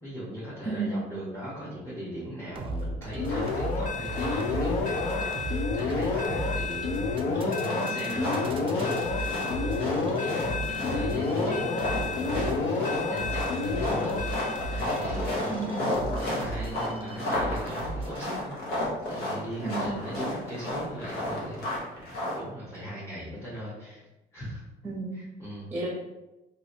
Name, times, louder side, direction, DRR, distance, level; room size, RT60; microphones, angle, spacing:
voice 1, 0.0-14.2 14.7-24.0 24.3-24.6 25.1-25.7, equal, 15° left, -11 dB, 1.1 m, -39 dB
voice 2, 0.6-1.0 7.3-8.3 15.5-15.9 19.6-20.0 24.8-25.2 25.7-25.9, right 3 dB, 10° right, -2 dB, 0.8 m, -33 dB
sound 1, 2.5-18.4, right 2 dB, 30° right, 0.4 m, -37 dB
sound 2, 3.2-15.3, left 4 dB, 45° left, 0.5 m, -30 dB
sound 3, 3.3-3.8 4.1-5.5 5.8-7.0 7.5-22.4, left 1 dB, 80° left, 1.0 m, -33 dB
3.0 x 2.7 x 2.7 m, 0.98 s
cardioid pair, 110°, 17 cm